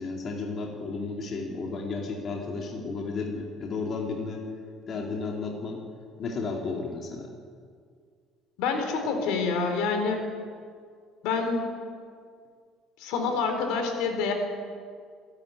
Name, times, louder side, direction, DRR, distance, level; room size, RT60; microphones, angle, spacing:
voice 1, 0.0-4.4 4.9-5.8 6.2-7.3, left 4 dB, 35° left, 0 dB, 2.6 m, -33 dB
voice 2, 8.6-10.3 11.2-11.7 13.0-14.3, left 4 dB, 75° left, 5 dB, 4.1 m, -27 dB
27.5 x 11.5 x 9.7 m, 2.1 s
cardioid pair, 165°, 0 cm